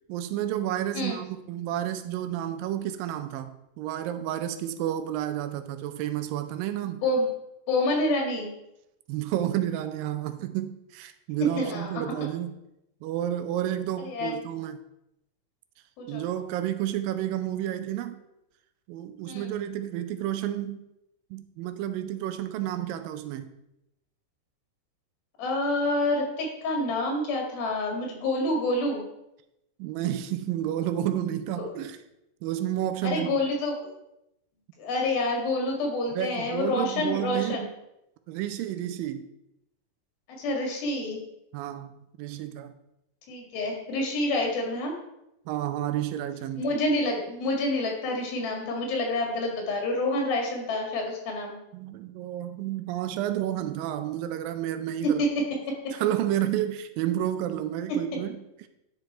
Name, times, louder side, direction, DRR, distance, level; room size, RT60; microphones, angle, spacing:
voice 1, 0.1-7.0 9.1-12.5 13.0-14.8 16.1-18.2 18.9-20.8 21.3-23.5 29.8-32.0 32.4-33.4 36.2-37.7 38.3-39.3 41.5-42.7 45.5-46.7 51.7-55.2 55.9-58.7, right 11 dB, 80° right, 10 dB, 2.3 m, -31 dB
voice 2, 6.8-7.3 7.7-8.6 11.6-12.0 14.0-14.4 16.0-16.3 19.3-19.5 25.4-29.0 31.6-31.7 33.0-33.9 34.8-37.7 40.4-41.2 43.3-44.9 46.5-51.6 55.0-55.3, left 1 dB, 85° left, 1 dB, 3.7 m, -28 dB
10.5 x 5.0 x 4.3 m, 0.86 s
omnidirectional pair, 4.1 m